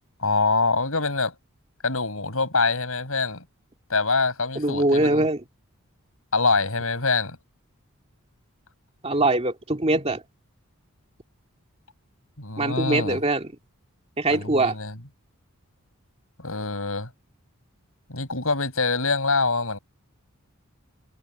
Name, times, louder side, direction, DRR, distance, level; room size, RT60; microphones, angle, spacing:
voice 1, 0.2-1.3 1.8-3.4 3.9-5.3 6.3-7.4 12.4-13.2 14.3-15.0 16.4-17.1 18.1-19.8, left 3 dB, 70° left, 7.8 m, -25 dB
voice 2, 4.6-5.4 9.0-10.2 12.6-13.5 14.2-14.7, right 2 dB, 30° right, 2.4 m, -22 dB
head